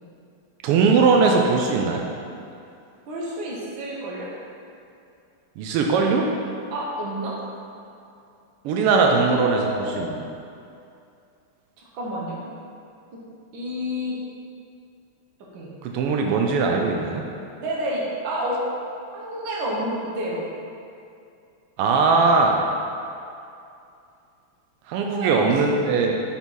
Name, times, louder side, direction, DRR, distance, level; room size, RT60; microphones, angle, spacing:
voice 1, 0.6-2.0 5.6-6.3 8.6-10.3 15.8-17.3 21.8-22.6 24.9-26.2, right 4 dB, 90° right, 1 dB, 1.5 m, -20 dB
voice 2, 3.1-4.3 6.7-7.4 9.0-10.1 11.9-12.4 13.1-13.2 13.5-14.2 15.4-15.7 17.6-18.7 19.1-20.4 24.9-25.9, equal, 65° right, -4 dB, 1.8 m, -29 dB
6.7 x 4.3 x 4.6 m, 2.5 s
omnidirectional pair, 2.4 m